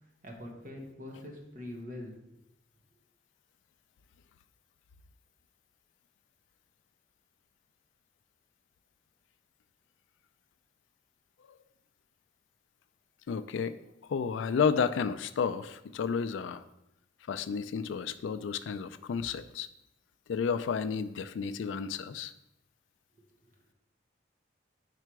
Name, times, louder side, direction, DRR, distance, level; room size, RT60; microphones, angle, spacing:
voice 1, 0.2-2.4, left 1 dB, 45° right, 1 dB, 1.1 m, -43 dB
voice 2, 13.3-13.8 14.1-16.6 17.3-19.7 20.3-22.3, left 6 dB, 85° left, 13 dB, 0.3 m, -31 dB
4.9 x 4.5 x 4.6 m, 0.85 s
head